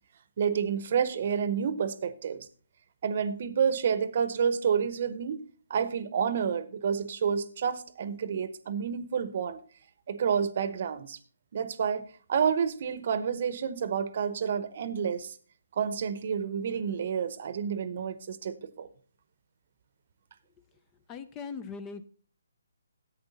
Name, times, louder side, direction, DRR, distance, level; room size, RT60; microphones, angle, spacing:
voice 1, 0.4-2.5 3.0-5.4 5.7-9.6 10.1-11.2 11.5-15.4 15.8-18.9, right 7 dB, 45° right, 15 dB, 0.8 m, -29 dB
voice 2, 21.1-22.0, left 5 dB, 20° left, 13 dB, 0.5 m, -39 dB
11.0 x 8.6 x 4.1 m, 0.43 s
hypercardioid pair, 155°, 0 cm